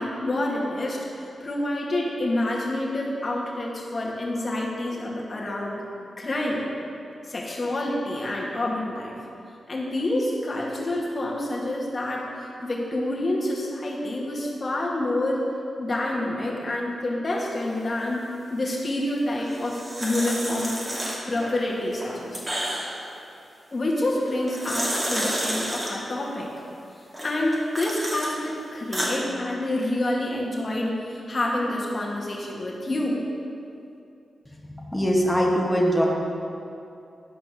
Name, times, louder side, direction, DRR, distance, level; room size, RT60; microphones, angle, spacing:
voice 1, 0.0-5.8 6.2-6.6 7.2-9.1 9.7-12.3 12.6-15.4 15.8-18.2 18.5-20.8 21.2-22.4 23.7-26.5 27.2-33.2, left 1 dB, 40° left, -4 dB, 2.3 m, -27 dB
sound 1, 19.4-21.5 21.9-23.1 24.3-25.9 27.1-28.3 28.7-29.1, right 1 dB, 30° right, 2.5 m, -30 dB
voice 2, 34.6-36.1, equal, 10° left, -2 dB, 2.0 m, -22 dB
11.0 x 5.1 x 6.4 m, 2.7 s
cardioid pair, 50°, 0 cm